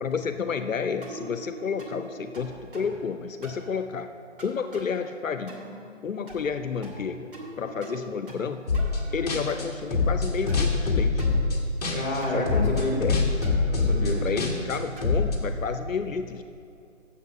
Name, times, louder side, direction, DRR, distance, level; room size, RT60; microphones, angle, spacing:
voice 1, 0.0-4.1 4.4-5.6 6.0-7.3 7.6-8.7 9.1-11.3 12.3-13.2 14.2-16.4, left 6 dB, 75° left, 9 dB, 0.6 m, -31 dB
sound 1, 1.0-1.4 1.8-2.0 2.3-3.0 3.4-3.7 4.4-4.9 5.5-5.8 6.3-6.6 6.8-7.5 7.8-8.5 8.7-9.6 10.5-10.7 11.2-11.4 11.8-12.5 12.8-13.1 13.4-15.2, right 1 dB, 40° right, 2.0 m, -42 dB
sound 2, 8.7-9.0 9.3-12.2 12.5-15.4, left 4 dB, 30° left, 1.2 m, -24 dB
voice 2, 11.9-13.0 13.7-14.5, left 1 dB, 15° left, -8 dB, 1.7 m, -29 dB
8.5 x 7.2 x 6.4 m, 2.5 s
figure-of-eight pair, 160°, 40 cm